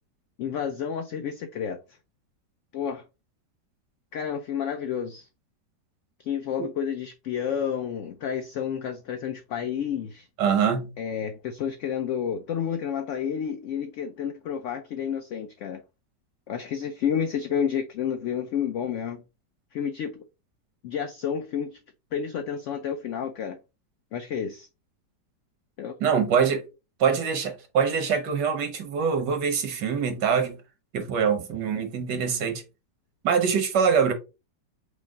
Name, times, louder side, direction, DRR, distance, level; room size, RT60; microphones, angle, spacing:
voice 1, 0.4-1.8 2.7-3.0 4.1-5.3 6.2-10.3 11.0-15.8 16.5-19.2 19.7-20.2 20.8-21.8 22.1-23.6 24.1-24.7 25.8-25.9, left 8 dB, 75° left, 0.7 m, -30 dB
voice 2, 10.4-10.9 26.0-26.7 27.0-30.6 30.9-32.6 33.2-34.1, right 6 dB, 85° right, 1.7 m, -24 dB
5.1 x 2.1 x 4.7 m
omnidirectional pair, 1.8 m